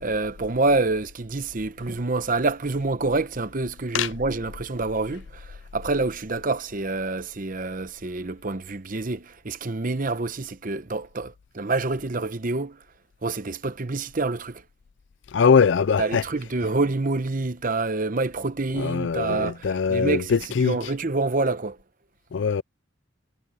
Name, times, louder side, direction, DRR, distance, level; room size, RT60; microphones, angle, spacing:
voice 1, 0.0-12.8 13.2-14.6 16.0-21.8, right 3 dB, 40° right, 0.9 m, -27 dB
voice 2, 15.3-16.2 18.8-20.8 22.3-22.6, left 6 dB, 60° left, 0.4 m, -21 dB
head